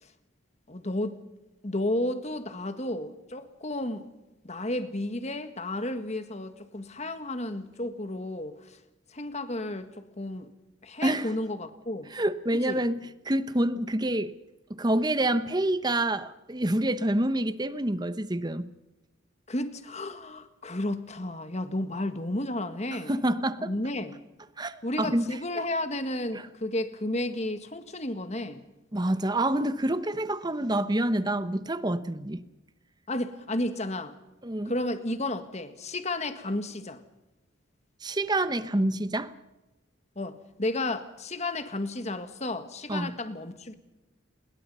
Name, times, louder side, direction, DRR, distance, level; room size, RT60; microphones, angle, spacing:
voice 1, 0.7-1.2 1.6-4.1 4.4-8.8 9.1-10.5 10.8-12.1 12.5-12.8 19.5-23.2 23.6-24.2 24.8-28.6 33.1-34.2 34.6-37.0 40.1-43.7, left 1 dB, 35° left, 1.7 m, -32 dB
voice 2, 12.1-14.3 14.7-18.7 22.9-23.7 24.6-25.4 26.3-26.5 28.9-32.4 34.4-34.7 38.0-39.3 42.9-43.1, right 1 dB, 20° right, 0.9 m, -27 dB
29.0 x 21.5 x 5.6 m
head